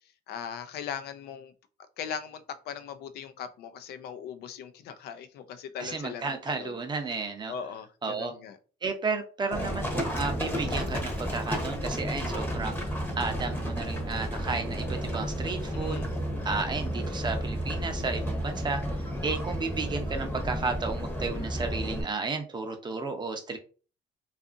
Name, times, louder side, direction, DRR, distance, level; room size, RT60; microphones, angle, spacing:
voice 1, 0.3-1.5 2.0-6.8 7.5-8.6 15.7-16.1, left 7 dB, 70° left, 0.4 m, -39 dB
voice 2, 5.8-7.5 8.0-8.3 8.8-16.0 16.4-18.8 19.2-23.6, right 4 dB, 25° right, 0.6 m, -33 dB
Livestock farm animals working animals, 9.5-22.0, equal, 10° left, 0.8 m, -32 dB
2.6 x 2.4 x 2.5 m
cardioid pair, 110°, 17 cm